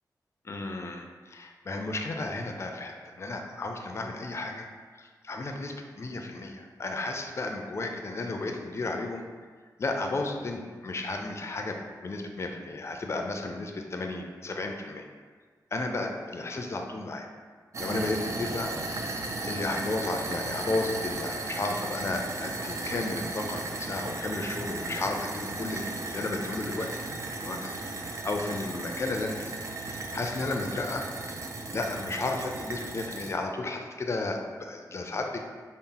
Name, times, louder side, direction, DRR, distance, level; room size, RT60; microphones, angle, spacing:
voice 1, 0.4-4.7 5.0-9.2 9.8-15.1 15.7-17.3 17.8-18.7 19.5-31.1 31.7-35.4, left 2 dB, 40° left, 3 dB, 0.4 m, -33 dB
sound 1, 17.7-33.3, right 2 dB, 45° right, 0.4 m, -35 dB
4.0 x 2.0 x 3.8 m, 1.5 s
wide cardioid pair, 90°, 7 cm